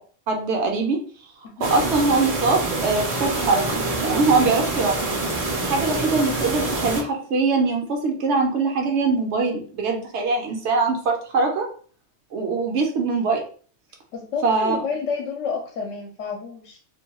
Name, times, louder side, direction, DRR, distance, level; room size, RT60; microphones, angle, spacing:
voice 1, 0.3-1.0 1.6-5.0 5.6-11.7 12.3-13.4 14.4-14.8, right 3 dB, 70° right, 3 dB, 0.9 m, -22 dB
sound 1, 1.6-7.0, right 2 dB, 40° right, 0.6 m, -26 dB
voice 2, 14.1-16.8, left 5 dB, 75° left, 1 dB, 0.9 m, -30 dB
2.5 x 2.2 x 2.8 m, 0.43 s
omnidirectional pair, 1.3 m